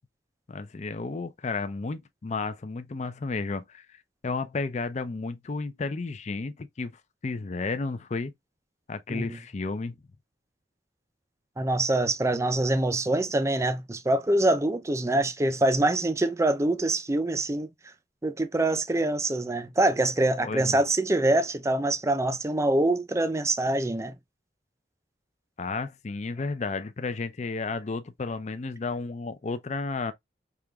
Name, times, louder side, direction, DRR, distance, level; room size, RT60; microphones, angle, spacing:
voice 1, 0.5-4.0 4.2-8.3 8.9-10.0 20.4-20.8 25.6-30.1, left 3 dB, 40° left, 0.5 m, -32 dB
voice 2, 11.6-17.7 18.2-24.1, right 2 dB, 15° right, 0.4 m, -25 dB
4.9 x 2.9 x 2.3 m
head